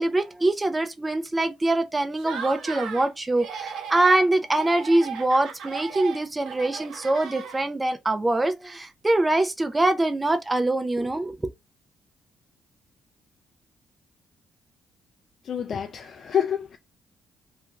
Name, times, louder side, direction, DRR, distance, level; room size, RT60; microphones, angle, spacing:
voice 1, 0.0-11.4, right 2 dB, 15° right, 0.4 m, -24 dB
Laughter, 2.1-3.1 3.4-4.3 4.5-7.9, right 7 dB, 80° right, 0.6 m, -36 dB
voice 2, 15.4-16.8, left 8 dB, 55° left, 0.3 m, -27 dB
2.5 x 2.2 x 2.9 m
cardioid pair, 90°, 0 cm